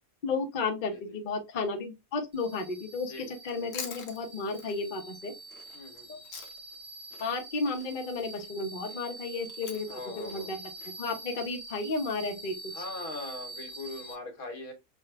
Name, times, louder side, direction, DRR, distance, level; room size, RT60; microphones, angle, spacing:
voice 1, 0.2-5.3 6.1-6.2 7.2-10.6 11.0-12.6, left 3 dB, 40° left, 0.8 m, -33 dB
sound 1, 2.3-14.1, right 2 dB, 50° right, 2.7 m, -45 dB
voice 2, 3.1-3.7 5.7-6.2 9.9-10.5 12.7-14.7, left 2 dB, 85° left, 1.7 m, -41 dB
Chewing mastication, 3.4-6.8 7.1-11.5, left 6 dB, 65° left, 1.2 m, -46 dB
6.1 x 2.3 x 3.3 m
omnidirectional pair, 1.5 m